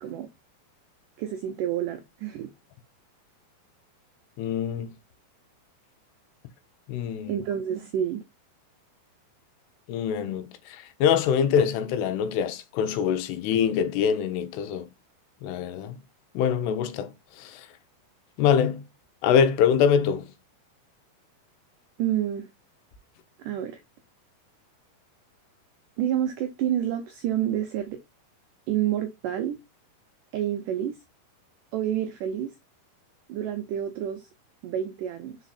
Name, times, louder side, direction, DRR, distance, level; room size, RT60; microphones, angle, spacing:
voice 1, 1.2-2.5 7.3-8.2 22.0-22.5 23.4-23.8 26.0-28.0 28.7-29.6 30.3-31.0 31.7-32.5 33.3-34.3 34.6-35.4, right 10 dB, 85° right, 1.8 m, -28 dB
voice 2, 4.4-4.9 6.9-7.4 9.9-14.9 15.4-16.0 16.4-17.1 17.4-17.6 18.4-18.8 19.2-20.3, left 8 dB, 85° left, 2.9 m, -24 dB
6.1 x 4.1 x 4.1 m
omnidirectional pair, 4.7 m